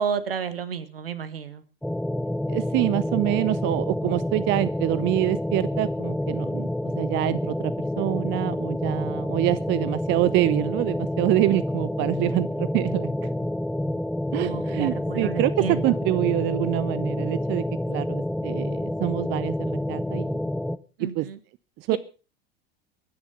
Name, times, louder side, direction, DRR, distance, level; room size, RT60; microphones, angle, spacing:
voice 1, 0.0-1.6 14.4-16.0 21.0-21.4 21.9-22.0, right 7 dB, 75° right, 13 dB, 1.8 m, -31 dB
sound 1, 1.8-20.8, left 1 dB, ahead, 0.7 m, -28 dB
voice 2, 2.5-13.1 14.3-20.4 21.1-21.3 21.8-22.0, right 17 dB, 40° right, 17 dB, 0.7 m, -26 dB
22.5 x 10.0 x 5.4 m, 0.36 s
figure-of-eight pair, 75°, 30 cm